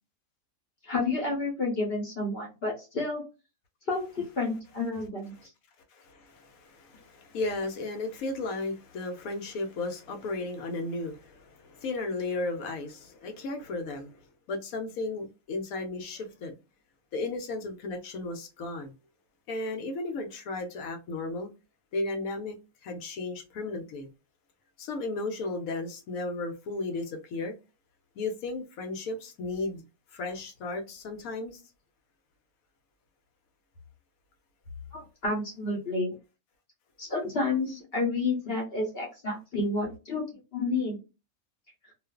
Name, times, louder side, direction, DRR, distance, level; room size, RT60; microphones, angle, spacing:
voice 1, 0.8-3.2 3.9-5.5 34.9-36.1 37.0-40.2 40.5-41.0, left 3 dB, 50° left, 0.9 m, -30 dB
voice 2, 5.9-14.2 14.5-16.5 17.1-18.9 19.5-21.5 21.9-22.6 22.8-24.1 24.8-27.5 28.2-29.8 30.1-31.6, left 2 dB, 75° left, 1.0 m, -34 dB
2.4 x 2.3 x 2.3 m
omnidirectional pair, 1.6 m